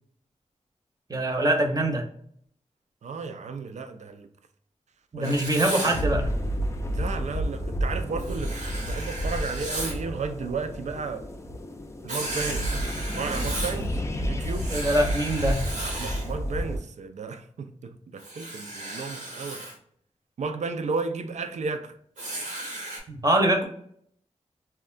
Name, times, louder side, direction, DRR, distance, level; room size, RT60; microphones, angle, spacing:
voice 1, 1.1-2.1 5.1-6.3 14.7-15.6 23.1-23.6, right 1 dB, 30° right, 0.7 m, -24 dB
voice 2, 3.0-4.3 5.2-5.4 6.9-11.3 12.0-12.8 13.1-14.7 16.0-19.6 20.4-22.0, right 4 dB, 70° right, 0.4 m, -33 dB
Writing, 5.2-6.0 8.2-10.0 12.1-13.8 14.4-16.3 18.2-19.7 22.2-23.0, right 1 dB, 85° right, 1.0 m, -35 dB
sound 1, 5.3-16.8, equal, 25° left, 0.4 m, -31 dB
3.5 x 2.2 x 2.3 m
cardioid pair, 65°, 13 cm